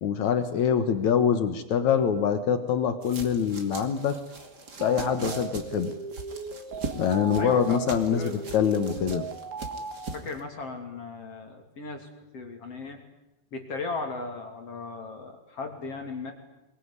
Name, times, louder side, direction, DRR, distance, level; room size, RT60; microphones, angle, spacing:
voice 1, 0.0-4.2 4.8-5.9 7.0-9.3, left 7 dB, 70° left, 10 dB, 1.8 m, -25 dB
sound 1, 3.0-10.4, right 3 dB, 30° right, 2.1 m, -40 dB
sound 2, 4.8-10.1, right 4 dB, 80° right, 4.7 m, -38 dB
voice 2, 7.4-7.8 8.2-8.4 10.1-13.0 13.5-16.3, left 3 dB, 35° left, 4 dB, 3.5 m, -36 dB
24.5 x 22.0 x 9.9 m, 0.94 s
omnidirectional pair, 5.3 m